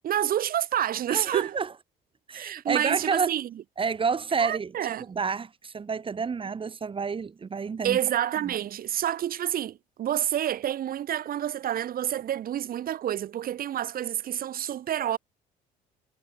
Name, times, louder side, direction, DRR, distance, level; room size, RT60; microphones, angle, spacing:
voice 1, 0.0-1.6 2.3-3.5 4.4-5.1 7.8-15.2, right 11 dB, 60° right, 6.8 m, -28 dB
voice 2, 1.1-1.7 2.3-3.3 3.8-4.7 5.1-8.0, right 5 dB, 30° right, 5.2 m, -29 dB
cardioid pair, 110°, 17 cm